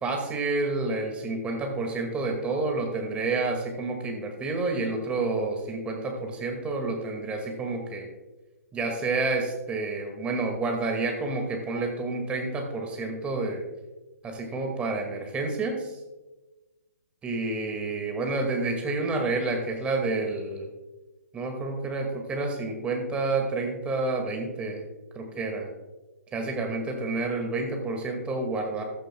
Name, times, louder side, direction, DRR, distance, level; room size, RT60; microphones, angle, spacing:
voice 1, 0.0-8.1 8.7-13.6 14.2-15.9 17.2-20.7 21.3-24.8 25.2-25.7 26.3-28.8, right 3 dB, 15° right, 3 dB, 2.0 m, -29 dB
15.0 x 11.5 x 2.3 m, 1.1 s
hypercardioid pair, 135°, 9 cm